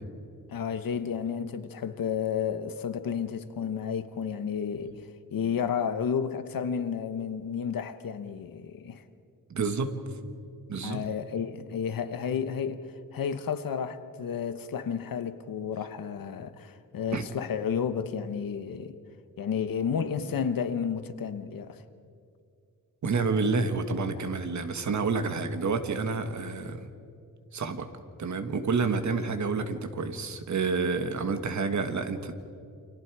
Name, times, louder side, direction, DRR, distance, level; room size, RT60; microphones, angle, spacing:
voice 1, 0.5-5.0 5.3-9.0 10.8-12.8 13.1-19.0 19.4-21.8, left 7 dB, 75° left, 1.2 m, -31 dB
voice 2, 9.5-9.9 10.7-11.0 17.1-17.3 23.0-26.9 27.5-27.9 28.2-32.3, right 4 dB, 55° right, 1.6 m, -29 dB
29.0 x 26.0 x 4.8 m
wide cardioid pair, 175°, 34 cm